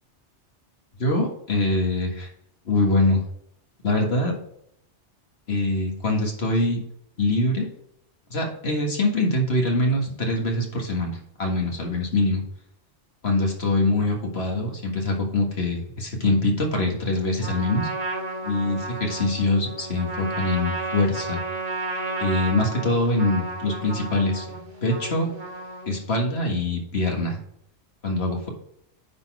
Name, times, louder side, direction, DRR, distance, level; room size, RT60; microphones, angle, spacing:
voice 1, 1.0-2.3 2.7-3.2 3.8-4.3 5.5-6.8 7.2-7.7 8.3-12.4 13.2-17.9 18.4-21.4 22.2-25.3 25.9-27.4 28.0-28.5, left 2 dB, 60° left, 1 dB, 1.8 m, -24 dB
Trumpet, 17.4-26.1, right 2 dB, 45° right, 1.3 m, -32 dB
9.6 x 4.1 x 4.7 m, 0.73 s
omnidirectional pair, 1.2 m